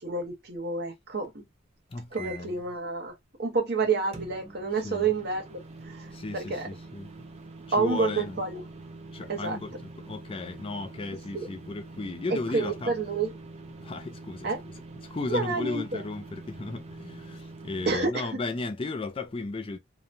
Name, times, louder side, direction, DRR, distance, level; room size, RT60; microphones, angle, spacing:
voice 1, 0.0-1.4 2.1-3.1 3.4-6.7 7.7-8.6 9.3-9.6 11.3-11.5 12.5-13.3 14.4-14.6 15.3-16.0 17.8-18.3, right 4 dB, 50° right, 0.9 m, -29 dB
voice 2, 1.9-2.6 4.8-5.1 6.1-7.2 7.8-8.4 9.1-12.9 13.8-14.7 15.0-19.8, left 3 dB, 25° left, 0.4 m, -35 dB
sound 1, 2.1-2.6 4.1-18.0, right 3 dB, 30° right, 0.5 m, -45 dB
2.9 x 2.2 x 2.5 m
head